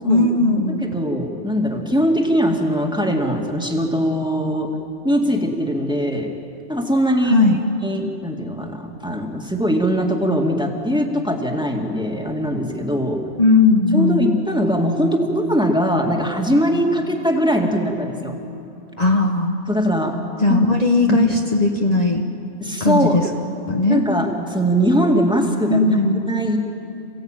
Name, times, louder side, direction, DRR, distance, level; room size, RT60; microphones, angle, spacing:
voice 1, 0.0-0.8 7.2-7.6 13.4-14.3 19.0-19.5 20.4-22.2 22.8-23.3 23.7-24.0 25.7-26.2, left 2 dB, 35° left, 1 dB, 1.3 m, -17 dB
voice 2, 0.8-4.7 5.0-6.3 6.7-7.4 7.8-13.2 13.9-18.4 19.7-20.2 20.5-20.6 21.1-21.2 22.6-23.2 23.9-25.8 26.3-26.6, equal, 5° right, 1 dB, 2.1 m, -21 dB
27.5 x 16.5 x 9.0 m, 2.9 s
omnidirectional pair, 1.2 m